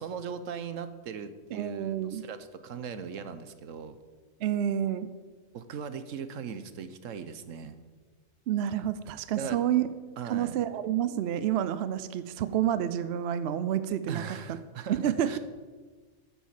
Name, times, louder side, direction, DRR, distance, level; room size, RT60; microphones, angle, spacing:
voice 1, 0.0-4.0 5.5-7.8 9.4-9.6 10.2-10.6 14.1-15.4, right 7 dB, 80° right, 11 dB, 1.2 m, -39 dB
voice 2, 1.5-2.2 4.4-5.1 8.5-14.2 14.5-14.6 14.9-15.4, right 10 dB, 65° right, 13 dB, 0.8 m, -29 dB
10.0 x 7.2 x 7.4 m, 1.4 s
omnidirectional pair, 1.3 m